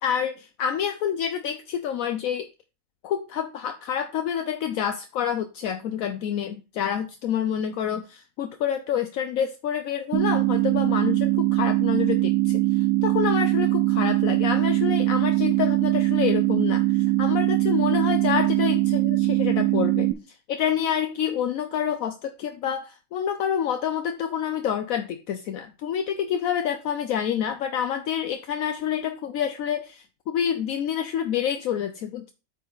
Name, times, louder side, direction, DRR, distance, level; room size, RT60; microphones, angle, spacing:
voice 1, 0.0-2.5 3.0-20.1 20.5-32.3, left 8 dB, 75° left, 7 dB, 1.0 m, -28 dB
sound 1, 10.1-20.1, right 17 dB, 85° right, 1.1 m, -22 dB
8.3 x 5.2 x 3.9 m, 0.31 s
omnidirectional pair, 1.5 m